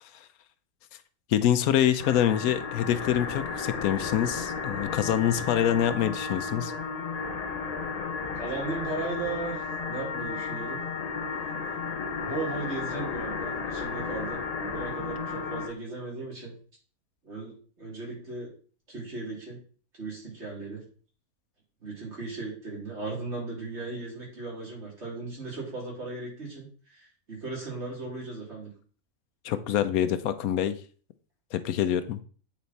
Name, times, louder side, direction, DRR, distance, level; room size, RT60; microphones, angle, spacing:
voice 1, 1.3-6.7 29.4-30.8 31.5-32.2, left 10 dB, 90° left, 12 dB, 1.1 m, -25 dB
sound 1, 2.0-15.7, left 5 dB, 40° left, 0.6 m, -33 dB
voice 2, 8.3-10.8 12.2-16.5 17.2-18.5 18.9-19.6 20.0-20.8 21.8-28.7, right 3 dB, 50° right, -4 dB, 3.3 m, -37 dB
8.6 x 4.2 x 4.1 m, 0.42 s
omnidirectional pair, 1.5 m